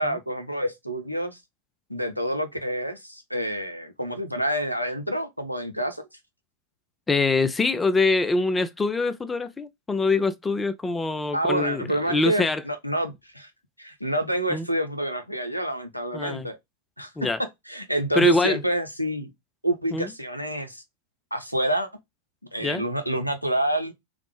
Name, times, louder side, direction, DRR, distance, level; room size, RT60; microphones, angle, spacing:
voice 1, 0.0-1.4 1.9-6.1 11.3-13.5 13.8-16.6 17.0-17.1 17.7-19.3 19.6-20.8 21.3-21.9 22.5-23.9, right 1 dB, 90° left, 0.5 m, -28 dB
voice 2, 7.1-12.6 14.5-14.7 16.1-16.5 17.2-17.4 18.1-18.6 19.9-20.1 22.6-22.9, left 3 dB, 10° left, 0.3 m, -24 dB
3.2 x 2.0 x 3.1 m
figure-of-eight pair, 90°, 0 cm